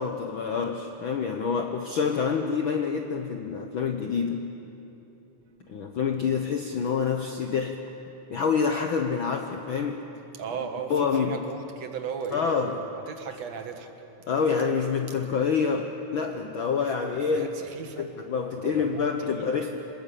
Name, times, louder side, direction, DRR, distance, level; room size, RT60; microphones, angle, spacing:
voice 1, 0.0-4.5 5.7-7.8 8.3-10.0 10.9-11.4 12.3-12.7 14.3-17.5 18.0-19.8, left 6 dB, 75° left, 4 dB, 1.1 m, -27 dB
voice 2, 10.3-13.9 15.3-15.5 17.3-18.1 18.6-19.5, right 6 dB, 60° right, 5 dB, 2.5 m, -37 dB
26.5 x 20.5 x 8.5 m, 3.0 s
omnidirectional pair, 3.7 m